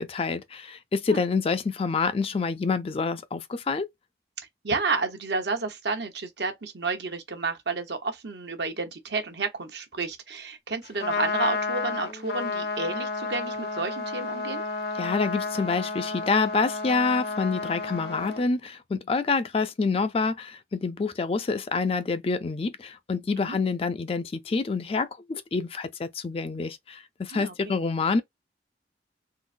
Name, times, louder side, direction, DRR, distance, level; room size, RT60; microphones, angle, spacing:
voice 1, 0.0-3.9 15.0-28.2, left 4 dB, 35° left, 0.4 m, -27 dB
voice 2, 4.4-14.6 23.5-23.6 27.3-27.7, right 3 dB, 70° right, 0.9 m, -31 dB
Trumpet, 10.8-18.4, left 3 dB, 65° left, 0.8 m, -31 dB
3.8 x 2.1 x 2.5 m
head